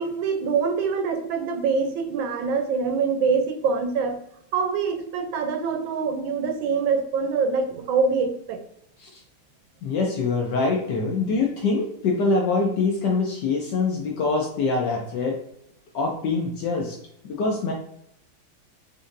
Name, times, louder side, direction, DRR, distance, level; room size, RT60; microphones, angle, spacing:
voice 1, 0.0-4.2 4.5-8.6, right 5 dB, 75° right, 6 dB, 1.2 m, -24 dB
voice 2, 9.8-15.4 15.9-17.0 17.2-17.7, left 3 dB, 70° left, 0 dB, 1.1 m, -24 dB
5.2 x 2.7 x 2.4 m, 0.76 s
omnidirectional pair, 2.3 m